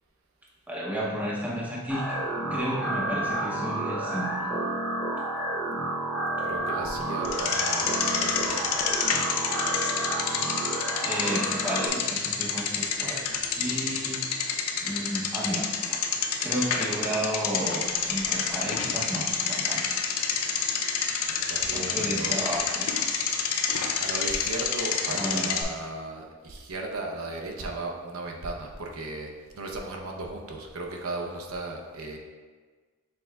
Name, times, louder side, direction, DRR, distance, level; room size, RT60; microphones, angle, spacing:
voice 1, 0.7-2.2 2.5-4.5 11.0-13.2 13.5-14.2 14.8-16.0 16.4-19.9 20.2-20.4 20.7-21.0 21.7-22.8 25.1-25.5, equal, 5° right, -5 dB, 0.6 m, -32 dB
sound 1, 1.9-11.9, right 1 dB, 10° left, 1.0 m, -30 dB
voice 2, 6.4-8.8 21.3-22.7 24.0-29.3 29.5-32.2, right 2 dB, 75° right, 1 dB, 0.6 m, -36 dB
Bicycle, 7.2-25.6, left 6 dB, 85° left, 0.5 m, -29 dB
6.4 x 3.6 x 2.2 m, 1.5 s
head